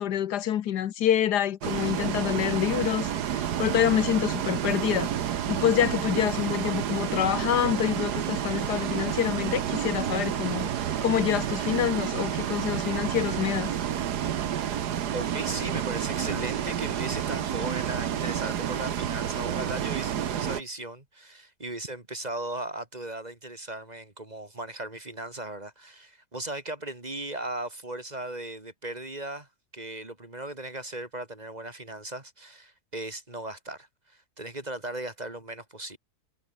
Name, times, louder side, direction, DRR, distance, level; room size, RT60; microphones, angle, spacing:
voice 1, 0.0-5.1 5.5-10.7 11.0-13.7, left 10 dB, 80° left, 1.5 m, -27 dB
Bus, 1.6-20.6, right 9 dB, 85° right, 1.7 m, -30 dB
voice 2, 15.1-36.0, right 2 dB, 25° right, 2.7 m, -37 dB
omnidirectional pair, 1.7 m